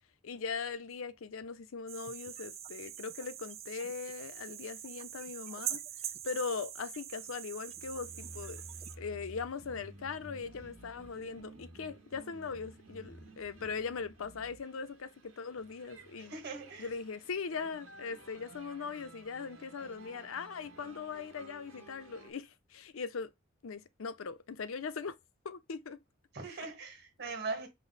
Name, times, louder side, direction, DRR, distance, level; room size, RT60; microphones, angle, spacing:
voice 1, 0.2-5.8 6.2-8.6 9.0-16.4 16.8-23.3 23.6-25.2 25.4-26.0, left 5 dB, 85° left, 0.6 m, -40 dB
sound 1, 1.9-8.9, right 10 dB, 30° right, 0.3 m, -43 dB
sound 2, 7.7-22.3, right 2 dB, 75° right, 1.3 m, -53 dB
voice 2, 16.3-16.9 26.3-27.7, right 3 dB, 55° right, 1.4 m, -40 dB
5.2 x 2.1 x 4.0 m
head